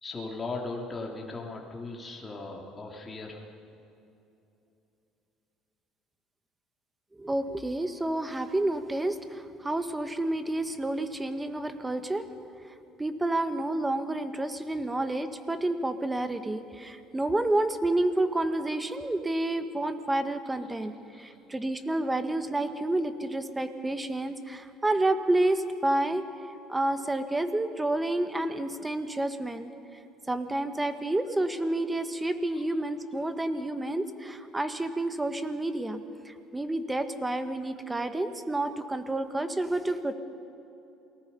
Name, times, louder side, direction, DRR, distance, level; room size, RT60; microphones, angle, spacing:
voice 1, 0.0-3.5 14.7-14.8 21.1-21.4 32.5-32.6 33.2-33.3, left 3 dB, 25° left, -1 dB, 2.9 m, -38 dB
voice 2, 7.2-12.3 13.0-26.2 26.7-29.7 30.3-40.1, right 1 dB, 15° right, 9 dB, 1.5 m, -29 dB
28.5 x 19.0 x 5.5 m, 2.8 s
supercardioid pair, 95°, 0 cm